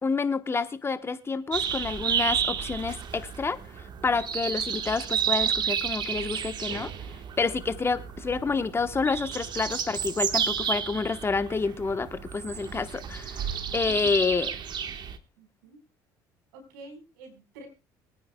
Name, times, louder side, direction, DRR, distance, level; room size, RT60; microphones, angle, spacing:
voice 1, 0.0-6.9 7.4-14.5, left 4 dB, 25° left, 1.0 m, -29 dB
sound 1, 1.5-15.2, right 8 dB, 45° right, 1.3 m, -31 dB
voice 2, 15.4-15.8 16.5-17.7, right 1 dB, 85° right, 4.5 m, -48 dB
23.5 x 9.5 x 2.2 m
supercardioid pair, 75°, 10 cm